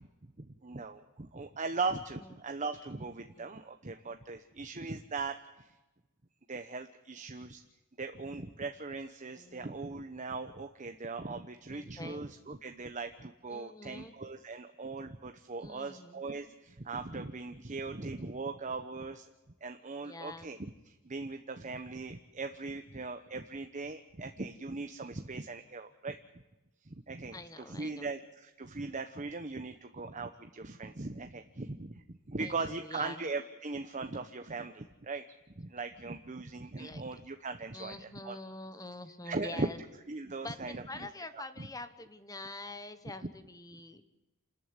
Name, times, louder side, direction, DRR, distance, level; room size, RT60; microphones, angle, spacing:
voice 1, 0.4-5.7 6.5-7.6 8.0-19.3 19.6-26.2 26.8-35.2 35.6-38.4 39.2-39.7 40.1-41.1 41.3-41.7, right 3 dB, 35° right, 7 dB, 1.0 m, -39 dB
voice 2, 9.3-9.8 11.7-12.2 13.5-14.1 15.6-16.2 20.0-20.6 27.3-28.1 32.4-33.3 36.8-37.0 37.7-39.8 40.4-44.0, left 2 dB, 15° left, 11 dB, 1.1 m, -46 dB
28.0 x 14.0 x 9.8 m, 1.1 s
head